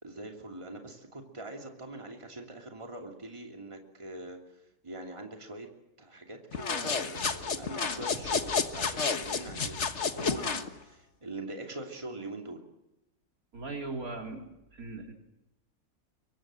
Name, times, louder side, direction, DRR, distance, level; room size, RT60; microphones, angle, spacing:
voice 1, 0.0-4.4 4.8-5.7 6.0-12.6, right 2 dB, 20° right, 2 dB, 2.9 m, -43 dB
sound 1, 6.5-10.7, left 5 dB, 50° left, 1.7 m, -31 dB
voice 2, 13.5-15.1, right 3 dB, 70° right, 3 dB, 4.1 m, -39 dB
25.0 x 23.5 x 7.6 m, 0.93 s
omnidirectional pair, 1.6 m